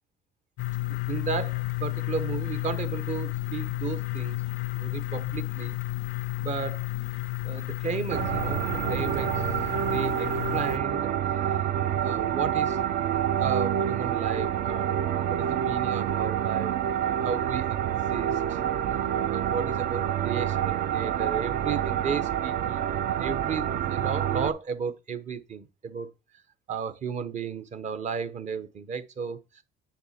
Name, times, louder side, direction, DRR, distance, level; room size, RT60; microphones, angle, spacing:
sound 1, 0.6-10.8, left 21 dB, 80° left, 0.4 m, -32 dB
voice 1, 1.1-4.4 4.7-5.8 6.4-6.9 7.4-9.5 9.9-11.1 12.0-12.8 13.4-16.7 17.0-17.8 18.1-18.6 19.3-22.9 23.2-26.1 26.7-29.4, right 6 dB, 45° right, 0.9 m, -34 dB
sound 2, 8.1-24.5, right 10 dB, 60° right, 0.5 m, -27 dB
7.0 x 3.6 x 5.7 m
cardioid pair, 110°, 17 cm